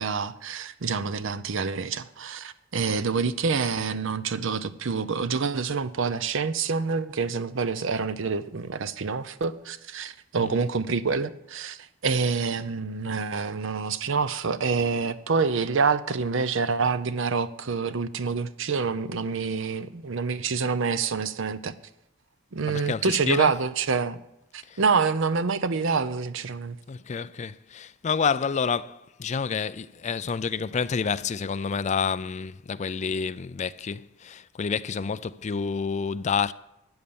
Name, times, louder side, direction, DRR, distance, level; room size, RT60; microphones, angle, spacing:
voice 1, 0.0-21.7 22.5-24.2 24.5-26.8, right 5 dB, 65° right, 0.6 m, -27 dB
voice 2, 22.7-23.5 24.7-24.8 26.9-36.5, left 6 dB, 35° left, 0.4 m, -29 dB
12.5 x 8.1 x 7.0 m
head